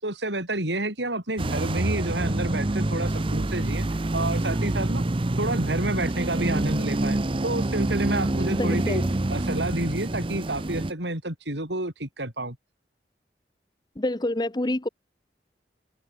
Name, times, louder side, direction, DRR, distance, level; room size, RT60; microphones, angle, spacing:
voice 1, 0.0-3.9 4.1-5.0 5.4-9.0 9.3-12.6, right 1 dB, 85° right, 7.2 m, -29 dB
sound 1, 1.4-10.9, right 2 dB, 30° right, 0.7 m, -26 dB
voice 2, 8.6-9.1 14.0-14.9, left 1 dB, 25° left, 0.8 m, -27 dB
head